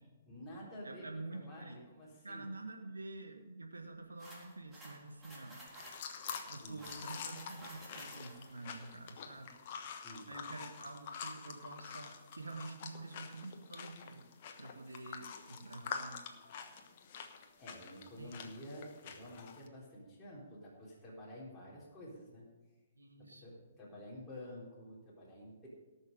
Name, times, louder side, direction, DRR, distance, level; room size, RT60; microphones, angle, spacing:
voice 1, 0.3-2.5 6.6-6.8 10.0-10.3 17.6-22.5 23.4-25.7, equal, 10° left, -8 dB, 3.8 m, -50 dB
voice 2, 0.8-1.8 2.2-5.6 6.5-9.5 10.3-14.2 14.6-16.2 18.2-18.4 23.0-23.6, right 2 dB, 90° right, 3 dB, 1.6 m, -48 dB
sound 1, 4.2-8.5, right 1 dB, 10° right, 4.1 m, -53 dB
sound 2, 5.7-19.7, left 7 dB, 45° left, 1.2 m, -47 dB
17.5 x 6.4 x 5.3 m, 1.2 s
hypercardioid pair, 130°, 0 cm